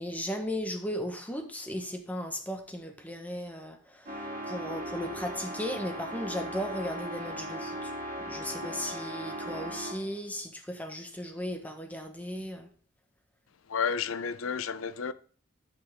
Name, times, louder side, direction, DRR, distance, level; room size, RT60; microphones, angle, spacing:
voice 1, 0.0-7.9 8.2-12.7, equal, 10° left, 1.3 m, -36 dB
sound 1, 4.1-10.1, equal, 40° right, 2.2 m, -38 dB
voice 2, 13.7-15.1, left 6 dB, 80° left, 0.6 m, -31 dB
12.0 x 5.9 x 3.7 m
head